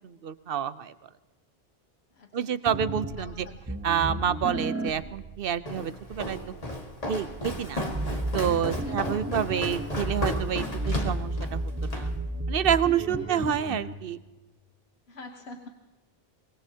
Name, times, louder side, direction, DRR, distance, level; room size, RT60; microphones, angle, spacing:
voice 1, 0.0-0.9 2.3-3.5 3.8-6.4 7.1-7.8 8.1-12.1 12.5-14.2, right 9 dB, 65° right, 14 dB, 0.9 m, -28 dB
voice 2, 2.1-2.6 3.2-3.6 4.8-5.0 8.7-9.4 13.1-13.4 15.1-15.7, left 2 dB, 90° left, 3 dB, 1.5 m, -43 dB
sound 1, 2.7-13.9, right 1 dB, 15° right, 1.1 m, -34 dB
Walk footsteps, 5.7-12.1, left 1 dB, 40° left, 1.9 m, -34 dB
24.5 x 20.5 x 2.9 m, 1.2 s
omnidirectional pair, 1.0 m